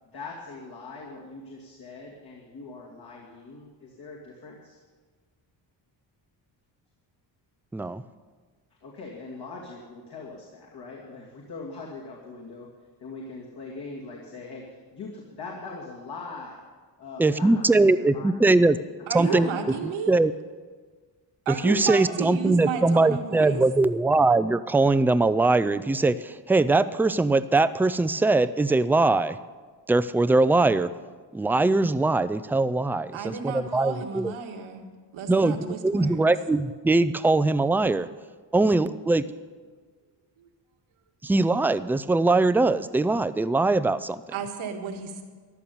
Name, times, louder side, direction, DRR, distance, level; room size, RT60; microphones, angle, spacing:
voice 1, 0.1-4.8 8.8-12.7 13.0-16.6 17.0-18.7 19.2-20.0, left 3 dB, 55° left, -3 dB, 2.6 m, -41 dB
voice 2, 17.2-18.8 19.1-19.5 20.1-20.3 21.6-29.4 29.9-30.9 31.3-34.3 35.3-38.1 38.5-39.2 41.2-44.2, right 2 dB, 5° right, 14 dB, 0.4 m, -21 dB
voice 3, 19.1-20.1 21.5-23.6 33.1-34.8 35.1-36.2 40.4-40.5 44.3-45.2, right 6 dB, 85° right, 3 dB, 1.9 m, -32 dB
14.0 x 11.0 x 7.1 m, 1.5 s
cardioid pair, 90°, 46 cm